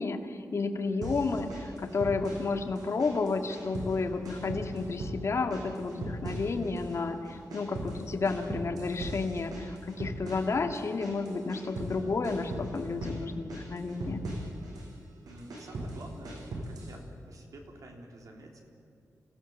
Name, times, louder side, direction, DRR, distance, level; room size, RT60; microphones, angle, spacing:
voice 1, 0.0-14.2, left 4 dB, 50° left, 4 dB, 1.9 m, -31 dB
sound 1, 1.0-2.5 2.8-4.0 4.2-5.2 5.5-7.0 7.2-12.0 12.2-13.2 13.5-14.9 15.3-17.0, right 2 dB, 90° right, 6.6 m, -39 dB
voice 2, 15.2-17.0 17.3-18.6, right 2 dB, 65° right, 1 dB, 3.6 m, -49 dB
27.5 x 16.0 x 7.3 m, 2.6 s
wide cardioid pair, 135°, 6 cm